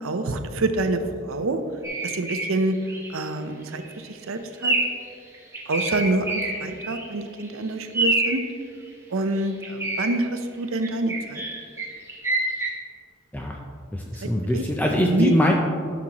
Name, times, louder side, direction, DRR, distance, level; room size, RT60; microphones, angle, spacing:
voice 1, 0.0-1.6 2.0-2.7 3.1-4.7 5.7-8.4 9.1-11.4 14.2-14.6 15.0-15.3, right 2 dB, 70° right, 8 dB, 0.6 m, -26 dB
sound 1, 1.8-2.5 2.9-3.2 3.6-3.9 4.6-5.0 5.3-7.1 7.4-7.5 7.9-8.4 9.4-10.1 10.8-12.7, right 2 dB, 10° right, 1.0 m, -26 dB
voice 2, 13.9-15.5, left 1 dB, 10° left, 0 dB, 0.4 m, -22 dB
12.5 x 6.0 x 2.9 m, 2.4 s
head